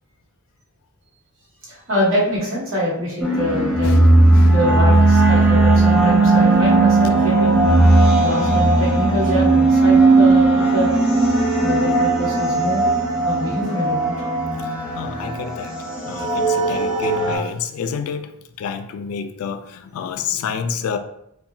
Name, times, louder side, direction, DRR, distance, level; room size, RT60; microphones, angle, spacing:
voice 1, 1.7-3.9 4.5-7.6 8.2-11.0 11.6-14.3 16.6-16.7, equal, 75° right, -5 dB, 1.1 m, -24 dB
sound 1, 3.2-17.4, right 2 dB, 5° right, 0.5 m, -16 dB
voice 2, 3.8-4.5 14.9-15.7 16.0-18.3 18.6-21.0, left 6 dB, 85° left, 12 dB, 0.3 m, -29 dB
2.8 x 2.2 x 2.6 m, 0.78 s
head